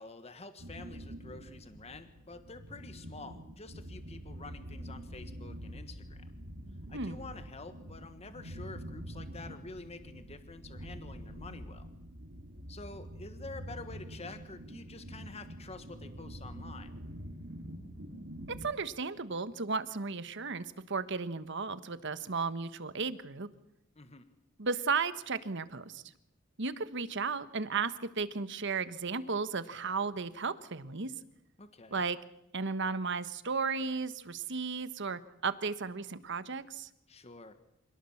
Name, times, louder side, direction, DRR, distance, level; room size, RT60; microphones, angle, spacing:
voice 1, 0.0-6.3 6.9-11.9 12.7-16.9 18.6-18.7 23.9-24.2 31.6-32.0 37.1-37.5, left 3 dB, 30° left, 9 dB, 1.4 m, -48 dB
sound 1, 0.6-18.7, equal, 80° right, 3.5 m, -46 dB
voice 2, 18.6-23.5 24.6-26.0 26.6-31.1 31.9-32.2 32.5-36.9, right 4 dB, 60° right, 13 dB, 1.3 m, -34 dB
26.5 x 18.5 x 7.2 m, 0.85 s
head